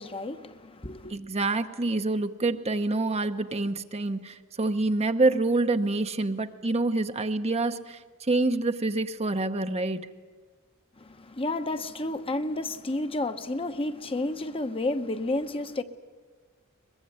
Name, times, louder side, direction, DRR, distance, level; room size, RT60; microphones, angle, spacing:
voice 1, 0.0-1.1 11.0-15.8, left 2 dB, 25° left, 1.0 m, -31 dB
voice 2, 1.1-10.1, right 2 dB, 30° right, 0.8 m, -27 dB
22.5 x 21.5 x 9.6 m
head